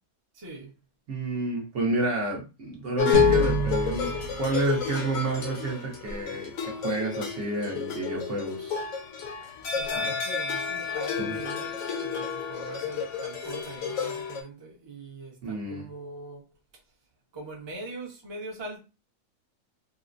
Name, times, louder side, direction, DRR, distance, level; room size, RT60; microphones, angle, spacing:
voice 1, 0.3-0.7 9.6-16.5 17.3-18.8, right 2 dB, 25° right, 0.7 m, -42 dB
voice 2, 1.1-8.8 11.2-11.4 15.4-15.8, right 2 dB, 60° right, 1.1 m, -30 dB
sound 1, 3.0-14.4, left 6 dB, 65° left, 1.1 m, -30 dB
sound 2, 3.1-5.7, right 2 dB, 30° left, 0.8 m, -30 dB
4.1 x 2.1 x 2.5 m
omnidirectional pair, 1.6 m